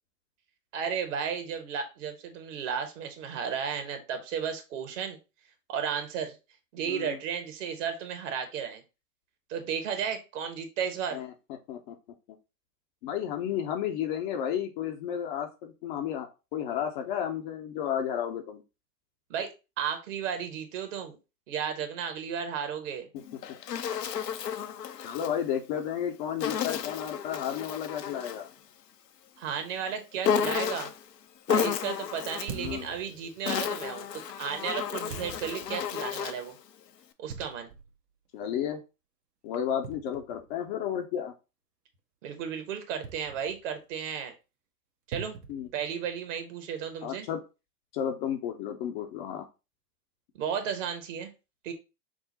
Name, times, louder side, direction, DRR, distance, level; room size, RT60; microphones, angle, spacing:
voice 1, 0.7-5.2 5.7-6.4 6.7-8.8 9.5-11.2 19.3-21.2 21.5-23.1 29.4-30.9 31.5-36.5 37.2-37.7 42.2-44.3 45.1-45.4 45.7-47.3 50.3-51.3 51.6-51.7, right 7 dB, 50° right, 7 dB, 1.2 m, -34 dB
voice 2, 6.9-7.2 11.1-11.3 11.7-11.9 13.0-18.6 23.1-23.2 25.0-28.5 32.5-32.9 38.3-38.8 39.4-41.3 45.5-45.7 47.0-47.4 47.9-49.5, left 9 dB, 30° left, 4 dB, 0.5 m, -32 dB
Insect, 23.2-25.3 26.4-28.5 30.2-31.0 31.5-32.6 33.2-36.5, left 8 dB, 85° left, 0.7 m, -32 dB
sound 1, 30.5-30.7 32.5-33.5 35.1-35.9 37.3-38.0 38.4-38.5 39.8-40.8 43.0-43.8 45.1-46.2, right 6 dB, 75° right, 1.1 m, -43 dB
6.0 x 2.1 x 4.0 m, 0.29 s
hypercardioid pair, 105°, 48 cm